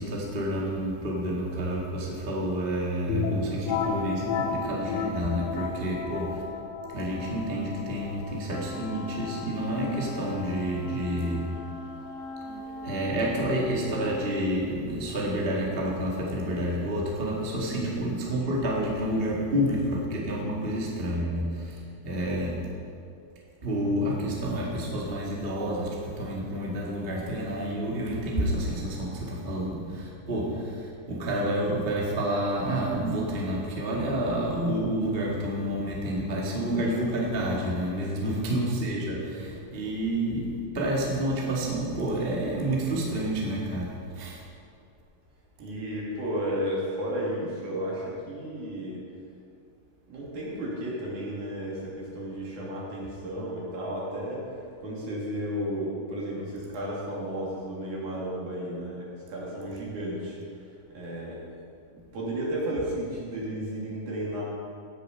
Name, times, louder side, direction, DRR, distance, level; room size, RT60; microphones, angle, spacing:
voice 1, 0.0-6.4 6.9-11.6 12.4-22.7 23.6-44.4, right 1 dB, 25° right, -4 dB, 1.5 m, -29 dB
sound 1, 3.1-12.6, left 5 dB, 70° left, 1.9 m, -34 dB
Wind instrument woodwind instrument, 8.4-14.5, left 2 dB, 85° left, 2.8 m, -40 dB
voice 2, 17.7-18.0 38.2-38.6 39.3-39.6 45.6-49.0 50.1-54.5 54.8-60.4 60.9-61.4 62.1-64.4, right 1 dB, 65° right, -5 dB, 4.0 m, -33 dB
17.5 x 6.8 x 5.4 m, 2.4 s
omnidirectional pair, 3.9 m